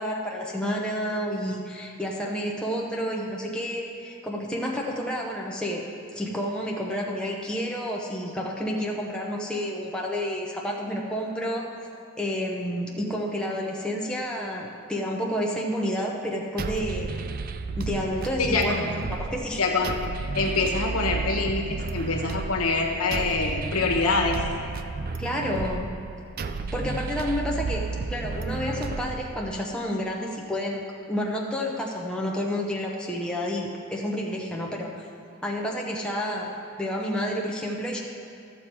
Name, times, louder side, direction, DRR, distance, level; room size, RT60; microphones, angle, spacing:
voice 1, 0.0-5.8 6.1-11.7 12.2-17.1 17.8-19.6 25.2-25.9 26.7-30.8 31.1-34.9 35.4-36.5 36.8-38.0, equal, 5° left, -3 dB, 0.9 m, -30 dB
sound 1, 16.6-29.6, right 4 dB, 40° right, 0.4 m, -32 dB
voice 2, 18.4-18.8 19.6-19.9 20.3-24.4, left 3 dB, 90° left, 1 dB, 1.3 m, -25 dB
13.5 x 7.1 x 4.7 m, 2.6 s
head